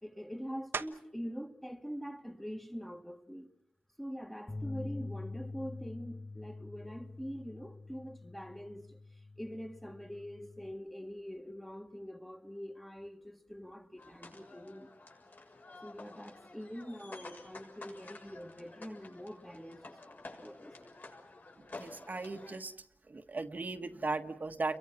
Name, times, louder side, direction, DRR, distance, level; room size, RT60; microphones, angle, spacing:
voice 1, 0.0-3.5 4.0-15.0 15.8-20.8, equal, 5° left, 1.9 m, -44 dB
sound 1, 0.7-1.3 1.9-6.3 6.8-12.0 12.3-17.9, right 5 dB, 90° right, 1.2 m, -51 dB
Bass guitar, 4.5-10.7, left 2 dB, 30° left, 5.4 m, -45 dB
sound 2, 14.0-22.6, left 2 dB, 55° left, 6.8 m, -51 dB
voice 2, 21.8-22.7 23.1-24.8, right 3 dB, 45° right, 1.5 m, -37 dB
30.0 x 23.0 x 6.1 m
wide cardioid pair, 105°, 4 cm